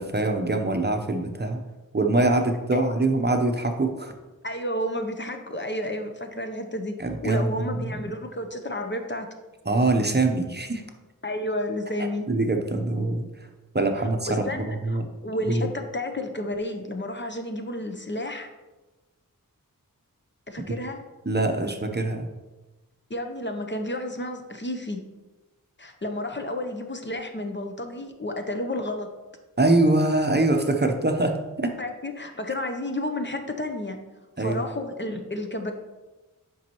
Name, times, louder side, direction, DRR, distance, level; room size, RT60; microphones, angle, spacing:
voice 1, 0.0-1.6 1.9-4.1 7.0-7.7 9.7-10.8 12.3-13.3 13.7-15.0 15.5-15.7 21.3-22.3 29.6-31.7 34.4-34.6, right 2 dB, 30° right, 4 dB, 0.7 m, -23 dB
voice 2, 4.4-6.9 7.2-9.3 11.2-12.3 14.2-18.5 20.5-21.0 23.1-25.0 25.8-29.1 31.8-34.0 34.4-35.7, left 1 dB, 35° left, 5 dB, 0.7 m, -31 dB
9.1 x 5.4 x 3.0 m, 1.1 s
wide cardioid pair, 70°, 34 cm